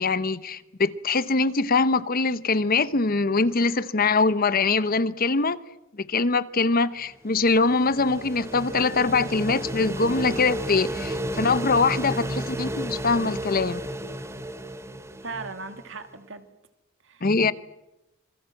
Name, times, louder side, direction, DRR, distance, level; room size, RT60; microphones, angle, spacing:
voice 1, 0.0-5.6 5.9-13.8 17.2-17.5, left 3 dB, 45° left, 0.9 m, -23 dB
sound 1, 7.1-15.9, right 1 dB, 15° right, 1.4 m, -33 dB
voice 2, 15.2-16.5 17.0-17.5, right 3 dB, 60° right, 2.6 m, -38 dB
27.0 x 22.5 x 7.8 m
head